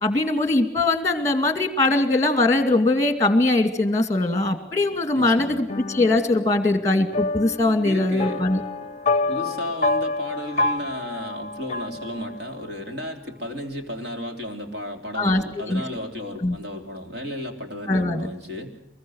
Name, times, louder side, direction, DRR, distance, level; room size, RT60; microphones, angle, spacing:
voice 1, 0.0-8.6 15.2-15.8 16.4-16.6 17.9-18.3, left 2 dB, 15° left, 9 dB, 2.3 m, -21 dB
voice 2, 5.1-5.6 7.8-8.4 9.3-18.8, left 1 dB, 55° right, 4 dB, 3.3 m, -33 dB
sound 1, 5.7-12.7, left 3 dB, 30° left, 0.7 m, -28 dB
24.0 x 21.5 x 6.3 m, 0.85 s
head